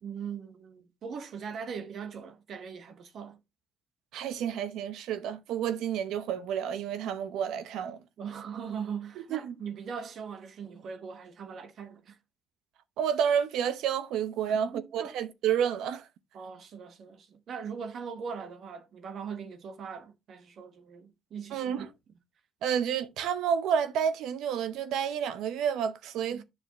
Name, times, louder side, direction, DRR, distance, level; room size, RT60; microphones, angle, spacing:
voice 1, 0.0-3.4 8.2-12.2 14.5-15.2 16.3-21.9 26.2-26.4, right 6 dB, 65° right, 1.4 m, -40 dB
voice 2, 4.1-8.0 9.3-9.5 13.0-16.1 21.5-21.9 22.6-26.4, right 8 dB, 90° right, 0.8 m, -30 dB
8.7 x 6.4 x 3.0 m
cardioid pair, 90°, 0 cm